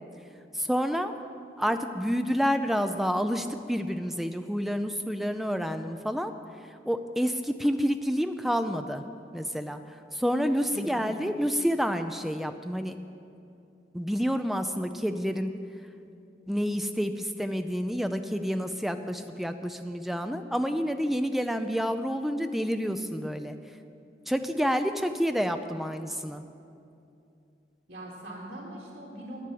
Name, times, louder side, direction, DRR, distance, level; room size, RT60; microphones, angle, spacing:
voice 1, 0.5-1.1 1.6-6.3 6.9-9.0 9.3-13.0 13.9-15.6 16.5-23.6 24.3-26.4, equal, ahead, 8 dB, 0.4 m, -29 dB
voice 2, 10.7-11.1 27.9-29.4, right 1 dB, 85° right, -7 dB, 2.6 m, -41 dB
9.3 x 7.5 x 8.4 m, 2.6 s
head